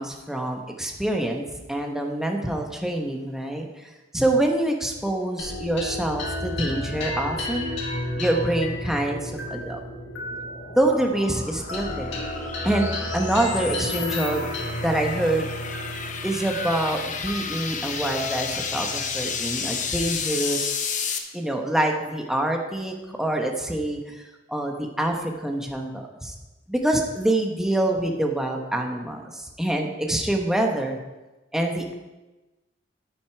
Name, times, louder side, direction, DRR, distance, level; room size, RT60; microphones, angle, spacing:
voice 1, 0.0-3.8 4.1-7.7 8.2-9.8 10.8-12.2 12.6-14.4 14.8-15.5 16.2-20.8 21.3-24.2 24.5-26.3 26.7-31.0 31.5-31.9, right 1 dB, 5° right, 2 dB, 1.0 m, -26 dB
sound 1, 5.4-20.1, left 1 dB, 65° left, 2.0 m, -33 dB
sound 2, 9.8-21.2, left 6 dB, 40° left, 0.8 m, -32 dB
9.5 x 9.4 x 4.6 m, 1.1 s
head